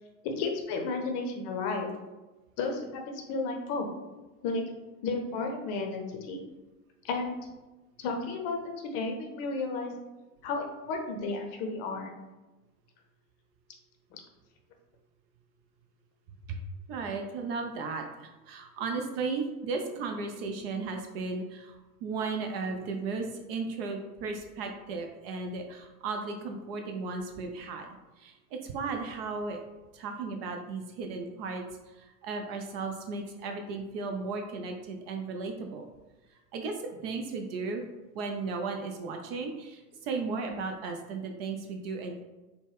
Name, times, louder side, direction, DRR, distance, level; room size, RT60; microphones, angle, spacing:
voice 1, 0.2-1.9 2.6-3.0 3.3-3.9 4.4-4.6 5.0-6.4 7.0-7.4 8.0-9.9 10.4-12.1 14.1-14.2, left 3 dB, 40° left, 3 dB, 0.7 m, -32 dB
voice 2, 16.9-27.9 28.2-29.6 29.9-31.6 31.9-35.8 36.5-37.8 38.1-42.2, right 4 dB, 40° right, 4 dB, 0.5 m, -35 dB
4.0 x 2.2 x 3.4 m, 1.1 s
figure-of-eight pair, 85°, 46 cm